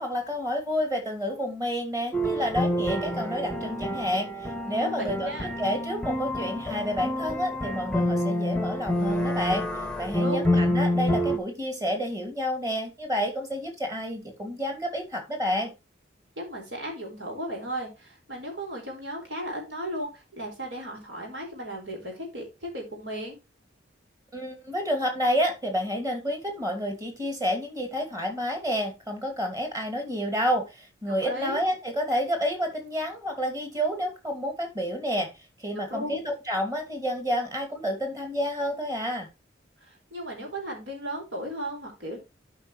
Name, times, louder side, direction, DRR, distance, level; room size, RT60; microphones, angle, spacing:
voice 1, 0.0-9.7 10.0-15.7 24.3-35.3 35.6-39.3, equal, 20° right, 2.6 m, -29 dB
sound 1, 2.1-11.4, left 1 dB, 5° left, 0.8 m, -28 dB
voice 2, 4.8-5.5 10.1-10.5 16.4-23.4 31.2-31.6 35.7-36.2 39.8-42.2, equal, 75° right, 4.7 m, -35 dB
12.0 x 5.4 x 3.2 m
head